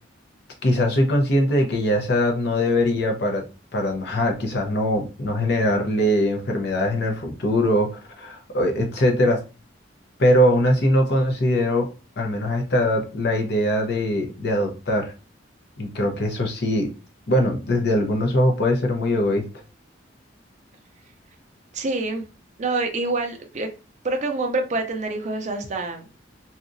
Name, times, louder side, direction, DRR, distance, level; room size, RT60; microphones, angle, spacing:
voice 1, 0.6-3.4 3.7-9.4 10.2-11.9 12.2-15.1 15.8-16.9 17.3-19.5, left 1 dB, 60° left, 2 dB, 0.7 m, -21 dB
voice 2, 21.7-22.2 22.6-23.7 24.0-26.1, right 2 dB, 40° right, 4 dB, 0.5 m, -26 dB
2.8 x 2.4 x 2.5 m, 0.32 s
head